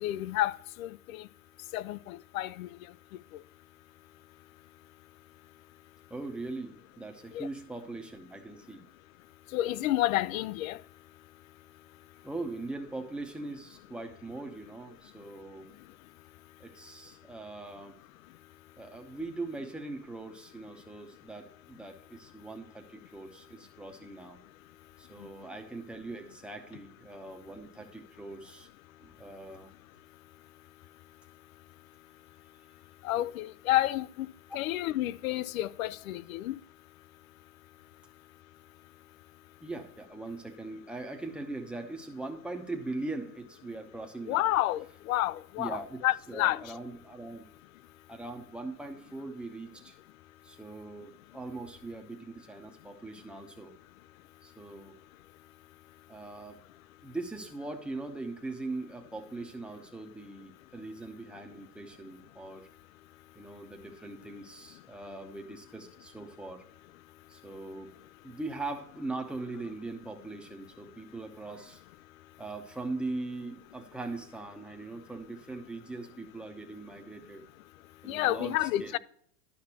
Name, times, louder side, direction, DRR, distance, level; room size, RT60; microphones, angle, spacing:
voice 1, 0.0-1.3 1.7-2.7 7.3-7.5 9.5-10.8 33.0-34.3 34.5-36.6 44.3-46.6 78.1-79.0, left 15 dB, 65° left, 0.5 m, -30 dB
voice 2, 6.1-8.9 12.2-15.8 16.6-17.9 18.8-24.4 25.0-28.7 29.0-29.7 39.6-44.5 45.6-46.0 46.3-47.4 48.1-50.0 50.4-53.7 54.4-54.9 56.1-56.6 57.0-62.7 63.3-66.7 67.3-67.9 68.2-71.8 72.4-77.4 78.0-79.0, right 2 dB, ahead, 0.8 m, -41 dB
12.0 x 5.7 x 2.9 m
hypercardioid pair, 135°, 47 cm